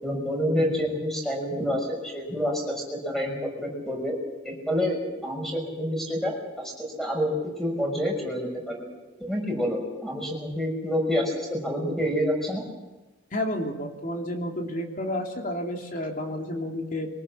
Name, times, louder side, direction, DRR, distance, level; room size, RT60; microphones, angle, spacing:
voice 1, 0.0-4.1 4.4-8.9 9.2-12.6, equal, ahead, 0 dB, 6.0 m, -28 dB
voice 2, 13.3-17.1, left 1 dB, 45° left, 2 dB, 3.1 m, -31 dB
23.5 x 19.5 x 7.4 m, 1.1 s
head